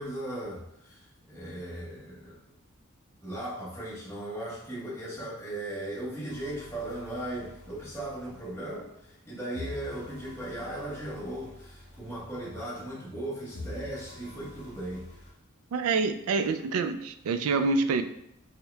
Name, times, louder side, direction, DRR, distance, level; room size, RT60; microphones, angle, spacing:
voice 1, 0.0-2.4 3.2-15.3, right 1 dB, 15° left, -9 dB, 1.1 m, -37 dB
sound 1, 6.3-9.3 9.5-13.2 13.5-15.3, left 1 dB, 55° left, 1.2 m, -47 dB
voice 2, 15.7-18.0, right 4 dB, 85° right, 9 dB, 0.3 m, -26 dB
4.4 x 2.2 x 3.3 m, 0.78 s
head